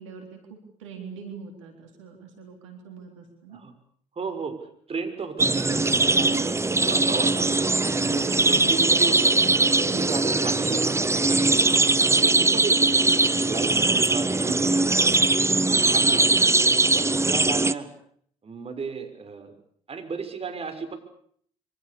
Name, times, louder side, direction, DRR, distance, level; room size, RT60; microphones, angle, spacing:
voice 1, 0.0-3.6, right 5 dB, 90° right, 3 dB, 3.8 m, -43 dB
voice 2, 4.1-4.6 4.9-7.6 7.9-9.3 9.8-13.1 13.5-15.1 15.7-16.5 16.9-17.9 18.4-19.5 19.9-20.9, right 4 dB, 40° right, 7 dB, 6.2 m, -34 dB
sound 1, 5.4-17.7, right 3 dB, 15° right, 1.1 m, -21 dB
27.0 x 25.0 x 7.0 m, 0.63 s
hypercardioid pair, 50°, 15 cm